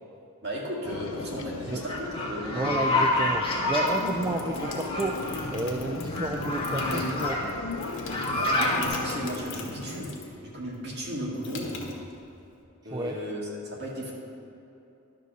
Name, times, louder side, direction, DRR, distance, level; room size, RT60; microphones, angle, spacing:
voice 1, 0.4-2.7 8.3-10.1 10.4-11.7 12.8-14.1, equal, 50° right, -4 dB, 2.1 m, -35 dB
sound 1, 0.8-9.3, left 3 dB, 85° left, 0.6 m, -37 dB
sound 2, 1.9-3.9 4.6-5.4 6.1-7.4 7.8-8.9, left 2 dB, 25° left, 1.4 m, -28 dB
voice 2, 2.5-7.6 12.9-13.2, right 2 dB, 20° right, 3 dB, 0.3 m, -31 dB
sound 3, 3.8-10.4 10.7-12.5, left 2 dB, 60° left, 1.4 m, -39 dB
11.0 x 5.3 x 6.5 m, 2.9 s
head